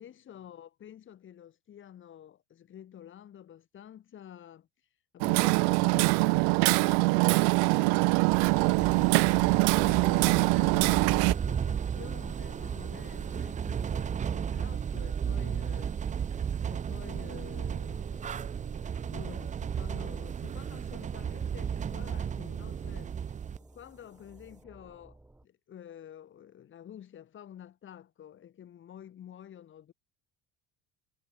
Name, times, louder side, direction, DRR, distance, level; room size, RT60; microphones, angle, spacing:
voice 1, 0.0-4.7 5.1-8.7 9.3-16.0 16.7-29.9, left 10 dB, 40° left, 7.3 m, -50 dB
Hammer, 5.2-11.3, right 40 dB or more, 75° right, 0.5 m, -23 dB
sound 1, 8.3-23.6, right 7 dB, 25° right, 0.9 m, -34 dB
sound 2, 8.6-25.5, right 2 dB, 5° right, 3.3 m, -56 dB
cardioid pair, 125°, 31 cm